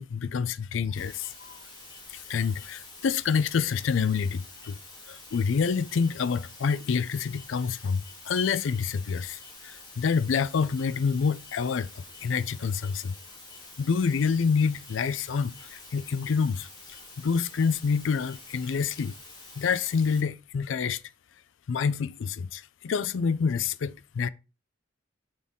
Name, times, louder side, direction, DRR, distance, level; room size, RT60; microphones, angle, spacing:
voice 1, 0.0-1.6 2.1-4.8 5.1-13.1 13.8-16.7 17.2-19.1 19.6-21.0 21.7-24.3, left 5 dB, 70° left, 0.4 m, -27 dB
sound 1, 1.0-20.2, left 2 dB, 25° left, 2.3 m, -48 dB
6.4 x 5.4 x 3.6 m
head